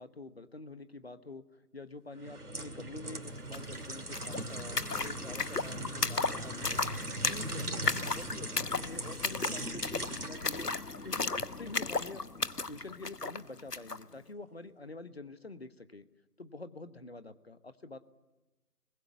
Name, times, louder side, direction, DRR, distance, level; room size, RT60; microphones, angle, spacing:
voice 1, 0.0-1.4 1.7-6.8 7.3-12.2 12.7-16.1 16.4-18.0, left 2 dB, 40° left, 12 dB, 1.2 m, -47 dB
sound 1, 2.2-12.1 12.6-12.7, right 1 dB, 75° right, 2.7 m, -41 dB
sound 2, 3.5-3.6 3.8-14.0, left 3 dB, 85° left, 1.2 m, -35 dB
28.0 x 20.5 x 8.3 m, 1.1 s
figure-of-eight pair, 160°, 46 cm